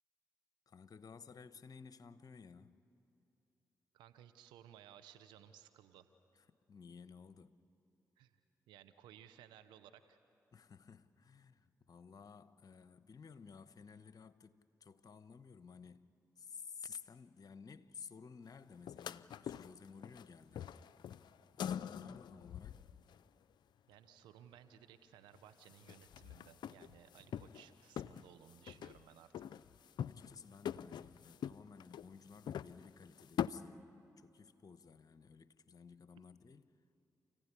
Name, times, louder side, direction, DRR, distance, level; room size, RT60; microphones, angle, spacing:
voice 1, 0.7-2.8 6.5-7.6 10.5-20.8 21.5-22.8 30.0-33.9 34.2-36.7, left 6 dB, 55° left, 1.0 m, -55 dB
voice 2, 3.9-6.1 8.2-8.3 8.7-10.2 23.9-29.4, right 10 dB, 90° right, 0.9 m, -59 dB
sound 1, 18.9-20.3 20.5-23.2 25.3-25.4 25.6-27.7 28.0-29.0 29.3-30.4 30.7-33.5, left 9 dB, 70° left, 0.5 m, -44 dB
29.0 x 15.5 x 9.9 m
supercardioid pair, 40°, 8 cm